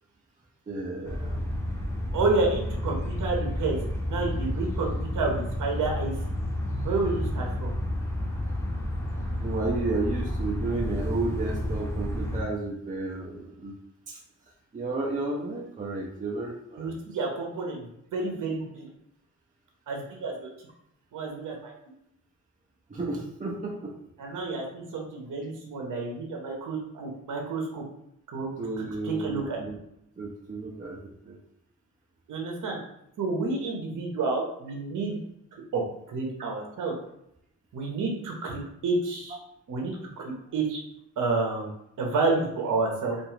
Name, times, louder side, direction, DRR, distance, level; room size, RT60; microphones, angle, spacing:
voice 1, 0.7-1.5 9.4-13.7 14.1-14.2 14.7-16.9 22.9-24.0 28.6-29.8 30.2-31.4 39.3-39.4, right 3 dB, 25° right, -2 dB, 0.5 m, -32 dB
sound 1, 1.0-12.4, left 1 dB, 10° left, 0.7 m, -30 dB
voice 2, 2.1-3.8 4.1-6.1 6.8-7.7 16.8-18.9 19.9-20.5 21.1-21.7 24.2-27.8 28.3-28.5 29.0-29.6 32.3-32.8 33.2-35.2 35.7-35.8 36.1-36.9 37.7-39.4 39.7-40.8 41.2-41.7 42.0-43.2, right 3 dB, 65° right, 0 dB, 0.8 m, -29 dB
2.5 x 2.3 x 3.0 m, 0.77 s
cardioid pair, 65°, 33 cm